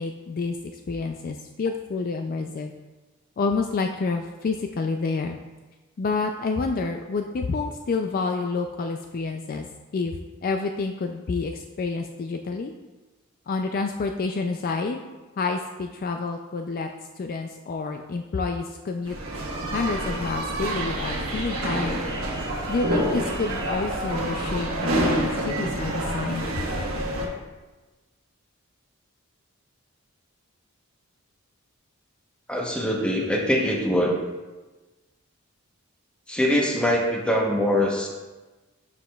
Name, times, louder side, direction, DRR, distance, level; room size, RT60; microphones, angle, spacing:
voice 1, 0.0-2.7 3.4-5.4 6.0-9.7 9.9-12.7 13.5-15.0 15.4-16.9 17.2-19.2 19.7-22.0 22.7-26.5, left 4 dB, 40° left, 4 dB, 0.3 m, -28 dB
sound 1, 19.1-27.3, right 1 dB, 75° right, 1.2 m, -28 dB
voice 2, 32.5-34.2 36.3-38.1, equal, 5° left, -1 dB, 0.9 m, -23 dB
11.5 x 4.9 x 2.3 m, 1.2 s
head